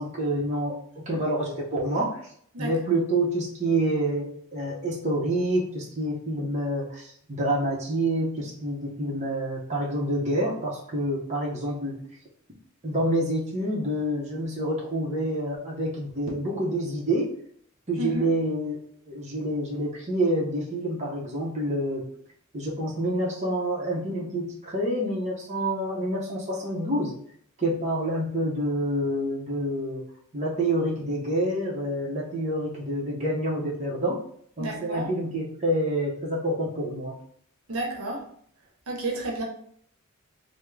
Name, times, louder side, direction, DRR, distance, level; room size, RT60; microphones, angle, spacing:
voice 1, 0.0-2.2 2.6-12.0 12.8-17.3 17.9-18.8 19.1-22.0 22.5-27.1 27.6-30.0 30.3-34.2 34.6-37.1, right 1 dB, 30° right, -4 dB, 0.7 m, -27 dB
voice 2, 34.6-35.1 37.7-38.2 38.9-39.4, right 1 dB, 80° right, 0 dB, 0.8 m, -31 dB
3.5 x 2.1 x 3.2 m, 0.62 s
head